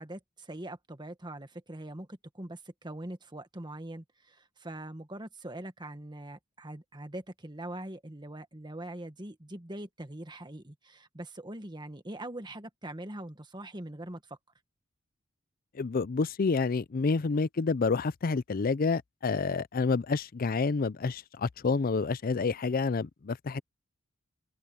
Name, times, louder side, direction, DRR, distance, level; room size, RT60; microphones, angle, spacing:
voice 1, 0.0-14.4, right 1 dB, 20° right, 1.6 m, -42 dB
voice 2, 15.8-23.6, left 4 dB, 45° left, 0.5 m, -28 dB
head